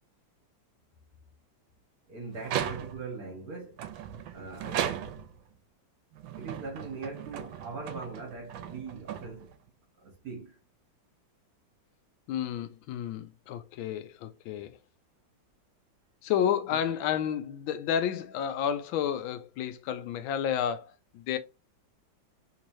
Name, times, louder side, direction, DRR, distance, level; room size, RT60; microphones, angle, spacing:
voice 1, 2.1-3.9 4.3-5.2 6.3-9.5 10.0-10.6 16.7-16.9, right 4 dB, 55° right, 1.4 m, -41 dB
sound 1, 2.4-3.2 3.8-5.5 6.1-9.7, right 10 dB, 80° right, 1.3 m, -37 dB
voice 2, 12.3-14.8 16.2-21.4, left 9 dB, 90° left, 1.4 m, -31 dB
3.7 x 3.0 x 2.6 m
omnidirectional pair, 2.1 m